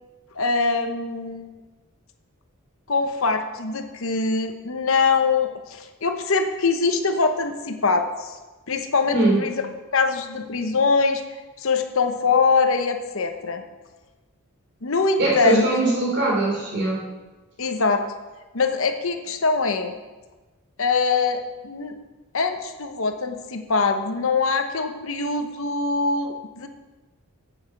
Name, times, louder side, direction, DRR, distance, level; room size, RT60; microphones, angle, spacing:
voice 1, 0.3-1.5 2.9-8.4 8.7-9.5 9.9-11.2 11.6-13.6 14.8-15.7 17.6-18.0 18.5-19.9 20.8-21.9 22.3-26.7, left 4 dB, 65° left, 6 dB, 0.9 m, -23 dB
voice 2, 15.2-17.0, right 2 dB, 55° right, -2 dB, 3.6 m, -21 dB
8.5 x 8.0 x 6.6 m, 1.2 s
head